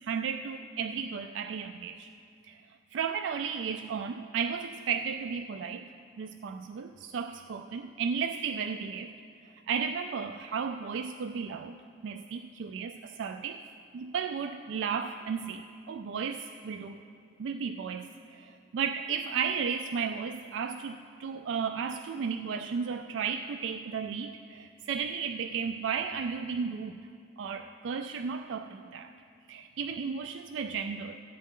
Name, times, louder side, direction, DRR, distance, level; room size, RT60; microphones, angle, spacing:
voice 1, 0.0-2.1 2.5-2.6 2.9-5.9 6.2-9.1 9.7-11.7 12.0-13.6 13.9-17.0 17.4-18.1 18.3-18.5 18.7-26.9 27.4-29.1 29.5-31.1, right 6 dB, 70° right, 7 dB, 0.3 m, -34 dB
14.0 x 9.1 x 3.7 m, 2.4 s
head